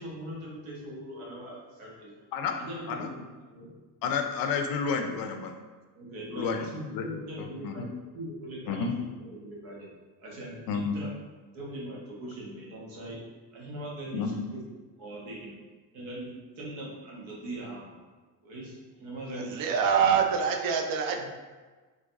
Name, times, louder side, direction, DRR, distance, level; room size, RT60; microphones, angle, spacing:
voice 1, 0.0-2.1 2.6-3.7 5.9-9.9 10.2-11.1 11.5-13.2 13.5-14.2 14.5-14.6 15.0-15.6 15.9-18.0 18.4-19.7 21.1-21.2, right 1 dB, 65° right, -3 dB, 1.3 m, -41 dB
voice 2, 4.0-5.5 6.3-7.1 7.4-7.9 8.7-9.0 10.7-10.9 14.1-14.3, left 5 dB, 45° left, 5 dB, 0.6 m, -30 dB
voice 3, 19.3-21.2, right 7 dB, 45° right, 4 dB, 0.6 m, -25 dB
3.8 x 2.4 x 2.5 m, 1.3 s
hypercardioid pair, 70°, 50 cm